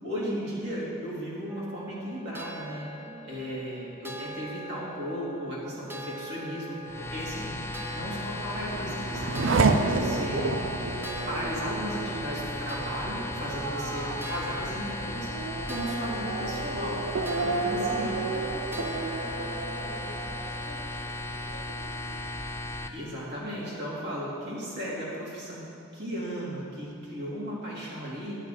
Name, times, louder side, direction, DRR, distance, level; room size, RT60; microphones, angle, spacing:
voice 1, 0.0-2.8 3.3-7.5 7.9-10.6 11.3-18.2 22.9-25.6 25.9-28.4, equal, 55° right, -7 dB, 3.3 m, -35 dB
sound 1, 1.5-20.9, equal, 10° right, 0.8 m, -43 dB
voice 2, 3.0-3.6 7.3-7.8 13.5-14.1 17.2-21.8, left 1 dB, 60° left, 0 dB, 1.5 m, -47 dB
sound 2, 6.8-22.9, left 2 dB, 10° left, 0.4 m, -36 dB
Race car auto racing / Accelerating revving vroom, 8.1-21.3 21.7-22.4, right 3 dB, 75° right, 0.6 m, -31 dB
11.0 x 9.6 x 5.3 m, 2.5 s
head